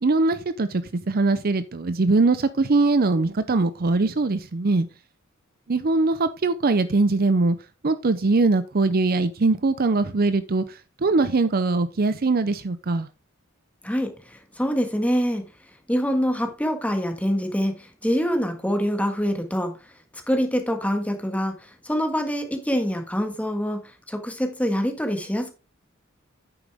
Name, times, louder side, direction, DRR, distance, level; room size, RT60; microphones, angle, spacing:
voice 1, 0.0-4.9 5.7-7.6 7.8-13.1, right 3 dB, 45° right, 0.6 m, -22 dB
voice 2, 13.8-15.5 15.9-19.7 20.3-25.5, equal, 5° left, 1.6 m, -25 dB
9.1 x 6.9 x 3.5 m
head